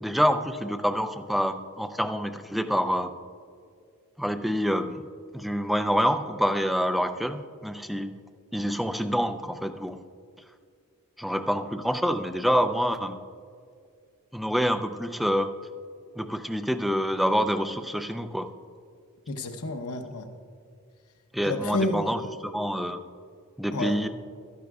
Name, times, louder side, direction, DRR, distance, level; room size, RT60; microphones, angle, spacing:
voice 1, 0.0-3.1 4.2-5.0 5.3-8.2 8.5-10.0 11.2-13.2 14.3-15.5 16.2-18.5 21.3-23.0 23.6-24.1, equal, ahead, 8 dB, 0.4 m, -27 dB
voice 2, 19.3-20.3 21.5-22.3 23.7-23.9, left 2 dB, 80° left, 6 dB, 0.8 m, -30 dB
15.0 x 12.0 x 2.4 m, 2.2 s
head